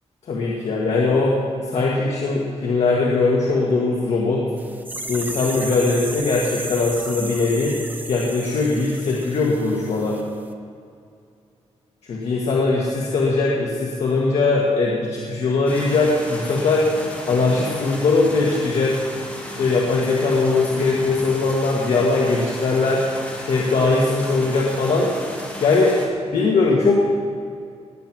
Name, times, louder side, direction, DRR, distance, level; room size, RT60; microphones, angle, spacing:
voice 1, 0.3-1.4 1.7-4.4 5.1-7.7 8.1-10.2 12.1-16.8 17.3-18.9 19.6-23.0 23.4-25.1 25.6-25.9 26.3-27.1, left 3 dB, 70° left, -3 dB, 1.8 m, -20 dB
sound 1, 4.6-10.2 10.5-10.6, right 2 dB, 15° right, 0.9 m, -34 dB
sound 2, 15.7-26.1, left 1 dB, 15° left, 2.6 m, -35 dB
19.5 x 7.6 x 6.2 m, 2.3 s
wide cardioid pair, 145°, 11 cm